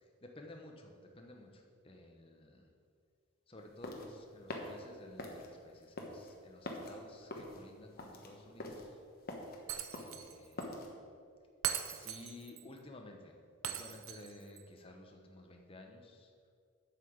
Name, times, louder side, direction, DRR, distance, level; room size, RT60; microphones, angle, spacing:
voice 1, 0.0-2.7 3.5-9.0 10.0-11.1 11.8-13.4 13.7-16.3, left 1 dB, 25° left, 2 dB, 1.0 m, -54 dB
sound 1, 3.6-10.9, left 1 dB, 45° left, 1.2 m, -45 dB
Shatter, 9.7-10.3 10.6-10.7 11.6-12.6 13.6-14.6, right 10 dB, 75° right, 0.7 m, -40 dB
8.2 x 5.9 x 8.0 m, 2.2 s
head